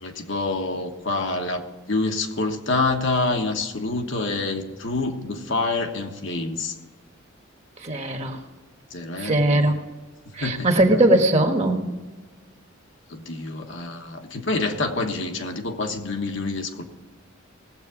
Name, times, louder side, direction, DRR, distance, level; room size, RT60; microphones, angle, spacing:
voice 1, 0.0-6.7 8.9-9.6 10.4-10.7 10.9-11.0 13.1-16.8, left 3 dB, 60° left, 4 dB, 1.3 m, -27 dB
voice 2, 7.8-8.4 9.2-9.7 10.3-11.8, right 1 dB, 30° right, 4 dB, 1.4 m, -20 dB
19.0 x 8.1 x 5.0 m, 1.3 s
head